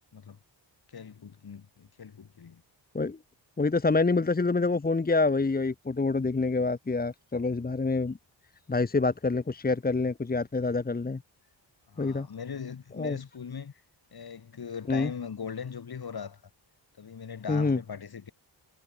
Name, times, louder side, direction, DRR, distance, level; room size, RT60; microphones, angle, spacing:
voice 1, 0.9-2.6 11.9-13.8 14.1-16.4 17.0-18.3, left 6 dB, 55° left, 7.1 m, -40 dB
voice 2, 3.6-8.2 8.7-11.2 12.0-12.3 13.0-13.2 14.9-15.1 17.5-17.8, left 3 dB, 20° left, 1.2 m, -26 dB
wide cardioid pair, 165°, 46 cm